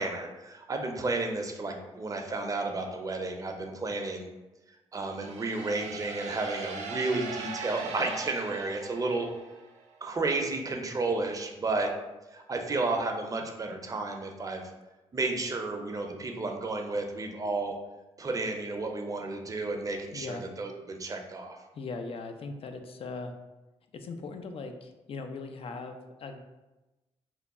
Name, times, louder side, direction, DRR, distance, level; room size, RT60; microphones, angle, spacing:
voice 1, 0.0-4.3 4.9-9.3 10.0-11.9 12.3-14.7 15.1-17.8 18.2-21.6, right 3 dB, 30° right, 3 dB, 0.5 m, -32 dB
sound 1, 5.1-9.8, right 4 dB, 85° right, 0.4 m, -40 dB
voice 2, 20.1-20.5 21.7-23.3 23.9-26.4, left 3 dB, 55° left, 5 dB, 0.4 m, -39 dB
3.0 x 2.2 x 3.6 m, 1.1 s
cardioid pair, 70°, 12 cm